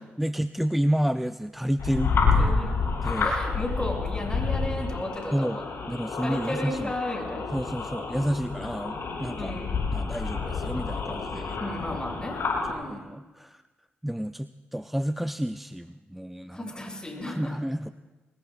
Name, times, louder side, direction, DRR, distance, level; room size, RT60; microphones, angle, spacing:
voice 1, 0.2-2.6 3.0-3.3 5.3-5.6 5.9-6.9 7.5-9.5 9.9-11.6 12.9-13.6 14.0-16.7 17.2-17.9, equal, 5° right, 11 dB, 0.4 m, -30 dB
sound 1, 1.8-12.7, left 4 dB, 65° left, 6.3 m, -29 dB
voice 2, 2.4-2.9 3.2-5.6 6.2-7.4 9.4-9.7 11.6-12.4 12.7-13.0 16.5-17.5, left 1 dB, 20° left, 0 dB, 6.7 m, -34 dB
25.0 x 20.5 x 2.5 m, 1.2 s
cardioid pair, 60°, 5 cm